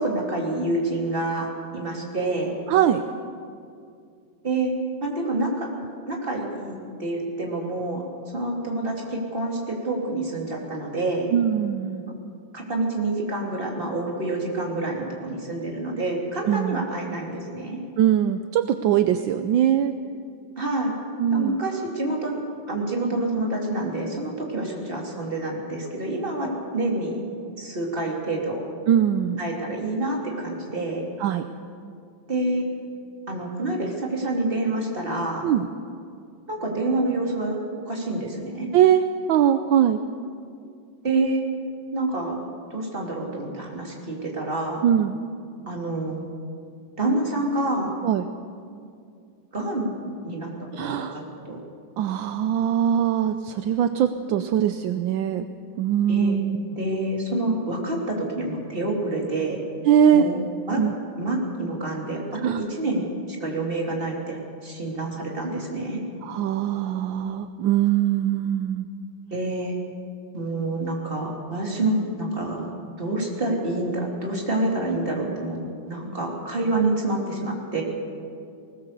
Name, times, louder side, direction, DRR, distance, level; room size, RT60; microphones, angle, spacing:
voice 1, 0.0-1.5 1.7-2.6 4.4-4.7 5.0-5.7 6.1-11.3 12.5-17.8 20.6-20.9 21.3-22.4 22.7-27.2 27.5-28.7 29.4-31.0 32.3-32.6 33.3-35.4 36.5-37.6 37.8-38.7 41.0-41.5 41.9-42.4 42.7-44.8 45.7-46.2 47.0-47.9 49.5-50.5 50.8-51.2 51.5-51.6 56.1-56.4 56.8-59.6 60.1-60.4 60.7-60.8 61.2-63.1 63.4-66.0 69.3-69.7 70.3-72.7 73.0-75.6 75.9-77.8, right 2 dB, 25° right, -1 dB, 3.3 m, -27 dB
voice 2, 2.7-3.0 11.3-12.0 16.5-16.8 18.0-19.9 21.2-21.6 28.9-29.4 31.2-31.4 35.4-35.7 38.7-40.0 44.8-45.2 48.0-48.3 50.8-51.2 52.0-55.4 55.8-56.6 59.9-60.2 60.8-60.9 62.4-62.6 66.2-68.9, right 10 dB, 75° right, 8 dB, 1.4 m, -21 dB
20.0 x 19.0 x 6.8 m, 2.4 s
omnidirectional pair, 2.2 m